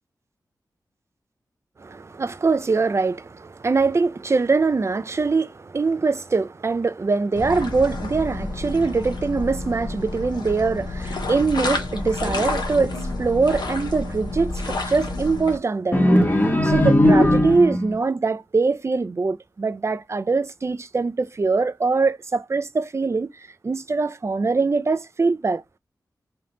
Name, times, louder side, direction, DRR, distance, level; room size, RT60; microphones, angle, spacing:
voice 1, 1.8-16.0 16.3-23.3 23.6-25.6, right 4 dB, 40° right, 0.5 m, -23 dB
sound 1, 7.3-15.6, left 2 dB, 75° left, 1.0 m, -29 dB
sound 2, 15.9-18.0, left 1 dB, 25° left, 0.9 m, -17 dB
3.3 x 2.9 x 3.7 m
wide cardioid pair, 80°, 7 cm